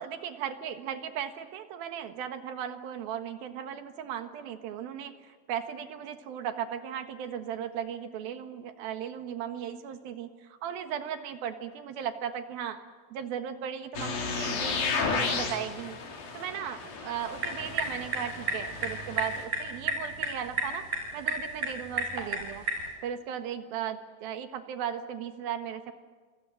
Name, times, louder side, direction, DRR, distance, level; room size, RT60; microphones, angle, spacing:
voice 1, 0.0-12.9 13.1-16.0 16.3-20.9 21.1-22.7 23.0-25.9, right 9 dB, 85° right, 7 dB, 3.3 m, -36 dB
sound 1, 13.9-19.4, left 4 dB, 80° left, 5.0 m, -33 dB
sound 2, 17.2-22.9, right 2 dB, 65° right, 6.9 m, -33 dB
28.0 x 27.5 x 7.7 m, 1.4 s
omnidirectional pair, 4.2 m